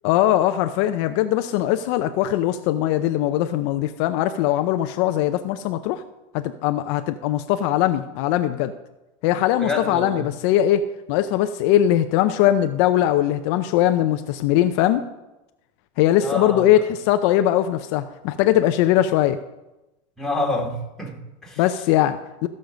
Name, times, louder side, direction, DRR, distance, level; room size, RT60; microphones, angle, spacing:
voice 1, 0.0-6.0 6.3-8.7 9.2-15.1 16.0-19.4 21.6-22.5, left 12 dB, 60° left, 9 dB, 0.6 m, -20 dB
voice 2, 9.6-10.3 16.2-16.6 20.2-21.6, left 2 dB, 5° left, -2 dB, 2.4 m, -27 dB
15.0 x 6.6 x 5.2 m, 0.98 s
supercardioid pair, 135°, 17 cm